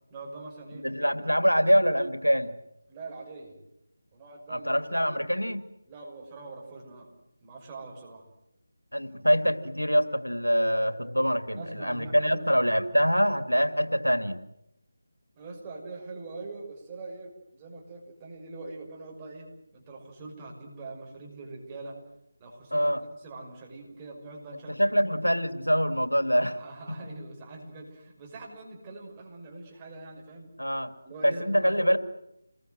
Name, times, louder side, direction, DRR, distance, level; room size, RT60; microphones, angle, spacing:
voice 1, 0.1-0.8 1.2-1.4 2.9-3.6 4.1-4.8 5.9-7.1 7.4-8.2 11.5-12.4 15.4-19.5 19.7-22.0 22.4-22.9 23.2-25.1 26.6-30.5 31.0-31.7, right 3 dB, 15° right, -1 dB, 6.0 m, -43 dB
voice 2, 0.7-2.5 4.5-5.7 8.9-14.4 22.7-23.0 24.7-26.6 26.9-27.0 30.6-30.9 31.2-32.0, equal, 90° left, 9 dB, 2.6 m, -25 dB
29.0 x 21.5 x 7.9 m, 0.84 s
figure-of-eight pair, 160°, 0 cm